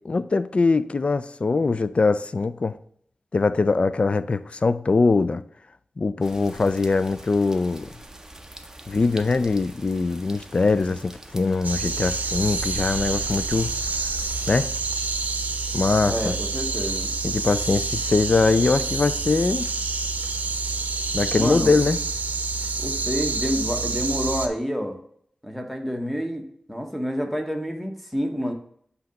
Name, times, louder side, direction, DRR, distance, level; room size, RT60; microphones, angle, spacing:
voice 1, 0.1-2.8 3.3-5.4 6.0-7.9 8.9-13.7 14.5-14.7 15.7-16.3 17.2-19.7 21.1-22.0, left 3 dB, 45° left, 0.3 m, -22 dB
sound 1, 6.2-14.7, right 1 dB, 20° right, 0.6 m, -43 dB
sound 2, 11.6-24.5, right 3 dB, 80° right, 0.6 m, -28 dB
voice 2, 16.1-17.1 21.3-21.8 22.8-25.0 25.4-28.5, equal, ahead, 1.0 m, -28 dB
7.9 x 2.8 x 5.2 m
wide cardioid pair, 75°, 3 cm